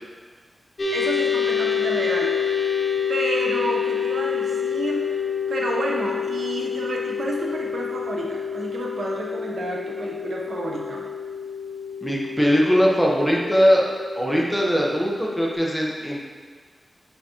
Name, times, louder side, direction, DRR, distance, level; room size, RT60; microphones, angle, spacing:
sound 1, 0.8-15.5, left 7 dB, 45° left, 0.8 m, -28 dB
voice 1, 0.9-2.7 3.1-5.2 5.5-11.1, right 1 dB, 80° right, -2 dB, 0.9 m, -30 dB
voice 2, 12.0-13.9 14.2-16.2, equal, 5° left, -3 dB, 1.1 m, -20 dB
9.0 x 4.0 x 3.0 m, 1.6 s
wide cardioid pair, 80°, 0 cm